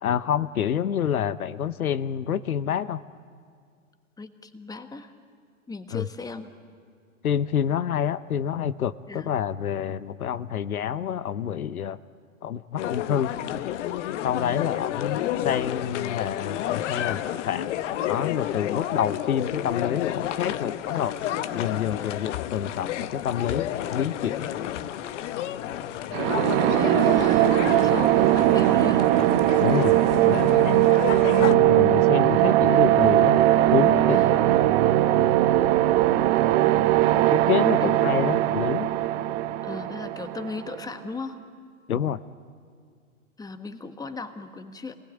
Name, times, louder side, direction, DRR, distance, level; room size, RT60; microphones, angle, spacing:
voice 1, 0.0-3.0 5.9-6.1 7.2-12.0 12.4-13.3 14.2-17.7 18.1-21.2 21.5-24.5 29.6-30.9 31.4-33.4 33.7-34.2 37.1-38.9 41.9-42.2, left 9 dB, 90° left, 15 dB, 0.8 m, -28 dB
voice 2, 4.2-5.1 5.7-6.5 9.1-9.3 26.7-29.1 34.1-34.5 37.8-38.1 39.6-41.4 43.4-45.0, left 3 dB, 10° left, 9 dB, 1.2 m, -37 dB
sound 1, 12.8-31.6, left 12 dB, 60° left, 1.0 m, -31 dB
sound 2, 26.1-40.8, right 14 dB, 40° right, 0.9 m, -20 dB
26.5 x 19.0 x 9.0 m, 2.2 s
hypercardioid pair, 110°, 42 cm